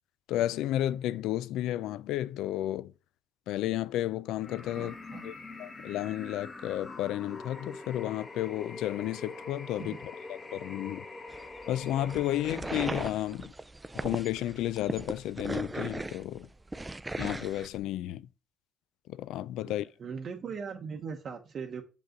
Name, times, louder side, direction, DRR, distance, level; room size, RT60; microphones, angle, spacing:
voice 1, 0.3-2.9 3.5-4.9 5.2-11.1 11.7-13.5 13.9-16.5 17.2-18.3 19.1-19.9, left 13 dB, 85° left, 0.3 m, -32 dB
sound 1, 4.4-13.4, left 3 dB, 25° left, 1.0 m, -44 dB
voice 2, 4.7-5.3 9.8-10.0 19.6-19.7 20.0-21.8, right 6 dB, 45° right, 0.8 m, -39 dB
sound 2, 11.3-17.8, right 2 dB, 10° right, 0.3 m, -38 dB
6.8 x 5.2 x 3.7 m
cardioid pair, 125°, 0 cm